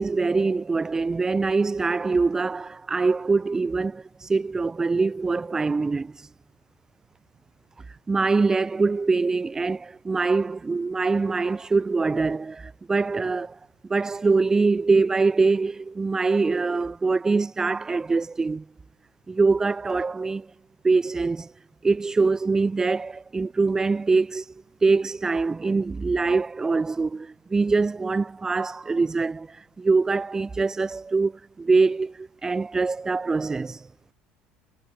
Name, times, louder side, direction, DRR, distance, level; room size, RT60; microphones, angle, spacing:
voice 1, 0.0-6.3 7.9-13.6 13.9-18.6 19.3-20.5 20.8-21.5 21.8-24.5 24.8-31.3 31.6-33.9, right 4 dB, 15° right, 8.0 m, -24 dB
cardioid pair, 120°, 3 cm